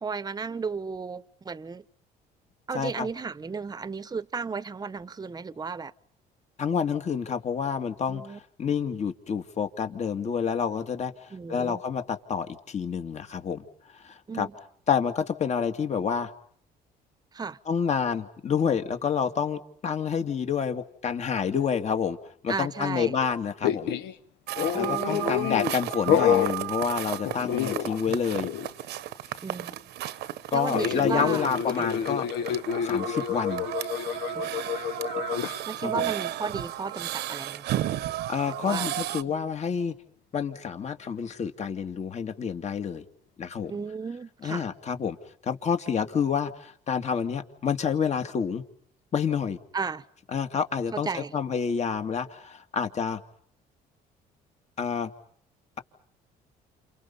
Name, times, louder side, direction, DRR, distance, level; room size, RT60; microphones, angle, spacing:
voice 1, 0.0-1.9 2.7-5.9 8.1-8.4 11.3-11.8 14.3-14.5 17.3-17.6 22.5-23.2 24.7-25.5 29.4-29.8 30.5-31.5 31.8-31.9 34.3-34.5 35.7-37.8 38.5-38.9 39.3-39.4 43.7-44.7 49.7-50.0 50.9-51.3, right 5 dB, 25° right, 1.0 m, -34 dB
voice 2, 2.7-3.1 6.6-13.6 13.9-14.5 14.9-16.3 17.7-22.2 22.4-23.9 24.7-28.5 30.5-32.3 32.8-33.7 35.8-36.0 38.3-39.9 40.3-43.0 43.4-43.7 44.4-45.2 45.4-48.6 49.1-49.6 50.3-53.2 54.8-55.1, left 7 dB, 40° left, 2.3 m, -28 dB
sound 1, 23.6-24.1 24.6-25.8 26.1-26.5 27.3-28.2 28.4-28.7 30.7-35.6, left 9 dB, 80° left, 1.6 m, -28 dB
sound 2, 24.5-39.2, right 13 dB, 75° right, 1.2 m, -34 dB
29.5 x 29.5 x 5.5 m
cardioid pair, 110°, 17 cm